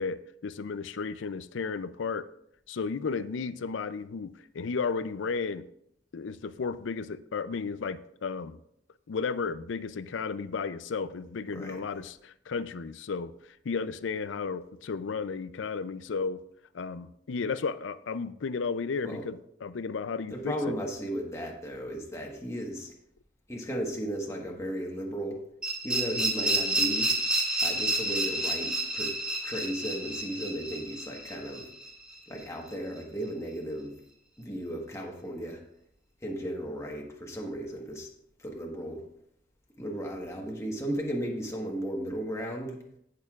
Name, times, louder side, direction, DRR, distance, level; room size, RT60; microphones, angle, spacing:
voice 1, 0.0-2.3 2.7-5.7 6.1-8.6 9.1-16.4 16.7-20.7, left 5 dB, 80° left, 14 dB, 0.5 m, -33 dB
voice 2, 11.5-11.8 19.0-19.2 20.3-22.9 23.5-25.4 25.8-27.1 27.6-31.7 32.3-33.9 34.4-35.6 36.2-38.1 38.4-39.0 39.8-42.8, equal, 15° left, -1 dB, 1.3 m, -35 dB
sound 1, 25.6-32.4, right 1 dB, 5° right, 1.9 m, -30 dB
16.5 x 6.6 x 2.4 m, 0.73 s
head